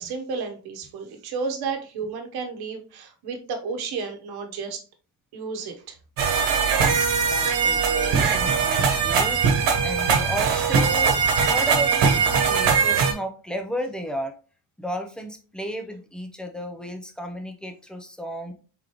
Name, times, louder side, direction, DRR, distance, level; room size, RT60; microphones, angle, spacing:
voice 1, 0.0-4.8 5.3-6.0, right 5 dB, 65° right, 5 dB, 1.0 m, -32 dB
sound 1, 6.2-13.1, right 5 dB, 90° right, 1.2 m, -21 dB
voice 2, 7.3-14.3 14.8-18.5, right 1 dB, ahead, 5 dB, 0.4 m, -33 dB
4.7 x 3.8 x 2.9 m, 0.36 s
cardioid pair, 170°, 41 cm